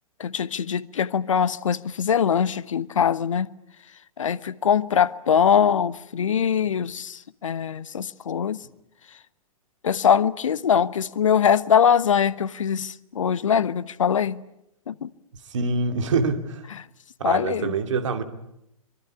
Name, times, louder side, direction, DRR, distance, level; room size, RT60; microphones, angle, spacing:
voice 1, 0.2-3.5 4.2-8.6 9.8-14.4 14.9-15.1 17.2-17.7, left 7 dB, 60° left, 1.0 m, -22 dB
voice 2, 15.3-16.7 17.2-18.2, right 4 dB, 55° right, 2.6 m, -25 dB
24.0 x 23.0 x 9.8 m
figure-of-eight pair, 110°, 18 cm